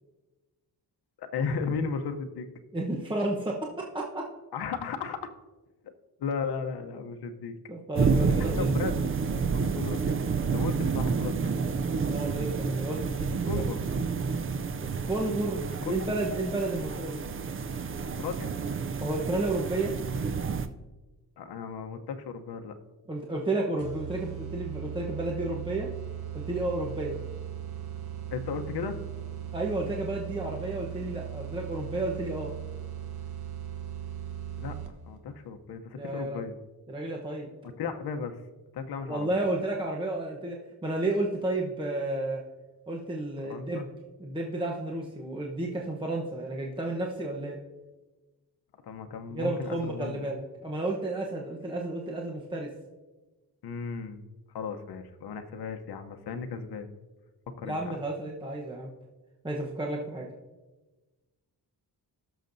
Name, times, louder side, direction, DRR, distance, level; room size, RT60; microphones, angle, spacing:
voice 1, 1.2-2.5 4.5-5.3 5.8-5.9 6.2-7.6 8.5-9.1 9.5-11.5 13.5-13.8 15.8-16.0 18.2-18.5 21.4-22.8 28.3-29.0 34.6-34.7 35.0-36.5 37.6-38.4 38.7-39.4 43.4-43.8 48.8-50.2 53.6-54.2 54.5-56.9 57.6-57.8, left 5 dB, 75° left, 6 dB, 0.8 m, -35 dB
voice 2, 2.7-4.2 7.7-8.7 12.1-13.6 15.0-17.3 19.0-19.9 23.1-25.9 26.3-27.2 29.5-32.5 35.9-36.4 36.9-37.5 39.1-40.6 40.8-42.4 42.9-43.9 44.2-47.6 49.3-52.7 57.6-58.9 59.4-60.3, right 2 dB, 15° right, -1 dB, 0.9 m, -32 dB
sound 1, 8.0-20.7, right 5 dB, 35° right, 0.4 m, -29 dB
sound 2, 23.8-35.2, right 10 dB, 50° right, 1.1 m, -38 dB
18.5 x 6.5 x 2.6 m, 1.2 s
wide cardioid pair, 130°, 39 cm